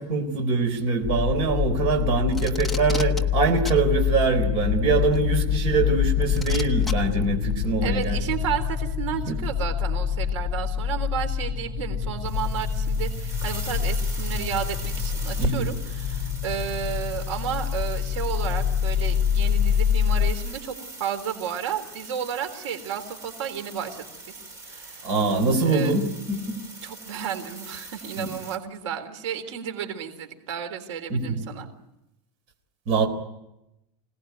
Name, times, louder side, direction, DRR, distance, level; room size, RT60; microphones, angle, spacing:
voice 1, 0.0-8.2 9.3-9.4 15.4-15.7 25.0-26.6 28.2-28.3 31.1-31.4 32.9-33.1, right 4 dB, 40° right, 4 dB, 3.9 m, -24 dB
sound 1, 1.0-20.3, left 8 dB, 25° left, 3.0 m, -26 dB
Packing tape duct tape, 2.3-3.2 3.7-3.8 5.1-5.2 6.4-6.9 8.0-8.1, left 2 dB, ahead, 0.9 m, -33 dB
voice 2, 7.8-24.4 24.7-25.1 25.7-25.9 26.8-31.7, right 8 dB, 90° right, 6 dB, 3.7 m, -32 dB
sound 2, 12.1-28.6, right 2 dB, 20° right, 2.7 m, -40 dB
26.0 x 18.5 x 9.4 m, 0.90 s
supercardioid pair, 170°, 15 cm